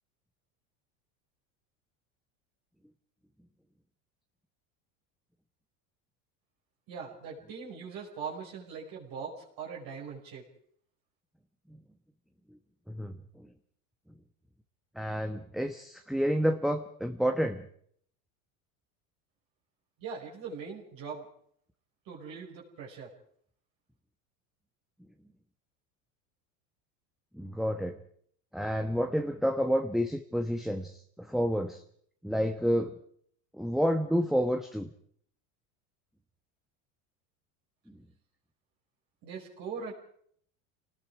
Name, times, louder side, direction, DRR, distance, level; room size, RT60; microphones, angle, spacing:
voice 1, 6.9-10.4 20.0-21.3 22.1-23.1 39.2-39.9, right 5 dB, 55° right, -2 dB, 5.5 m, -41 dB
voice 2, 15.0-17.6 27.3-28.0 28.5-31.8 32.2-32.9 33.6-34.9, equal, ahead, 5 dB, 1.1 m, -29 dB
28.0 x 19.0 x 4.9 m, 0.63 s
supercardioid pair, 115°, 41 cm